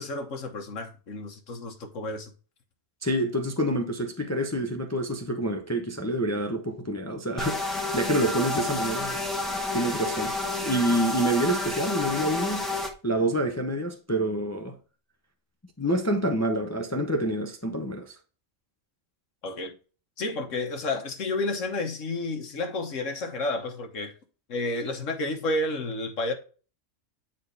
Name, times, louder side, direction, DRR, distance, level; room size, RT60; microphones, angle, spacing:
voice 1, 0.0-2.3 19.4-19.7 20.2-24.1 24.5-26.3, left 2 dB, 75° left, 1.5 m, -31 dB
voice 2, 3.0-9.2 9.7-10.3 10.6-12.7 13.0-14.7 15.8-18.2, right 1 dB, 15° left, 0.6 m, -27 dB
sound 1, 7.4-12.9, left 2 dB, ahead, 1.2 m, -30 dB
9.0 x 4.4 x 3.4 m
omnidirectional pair, 1.3 m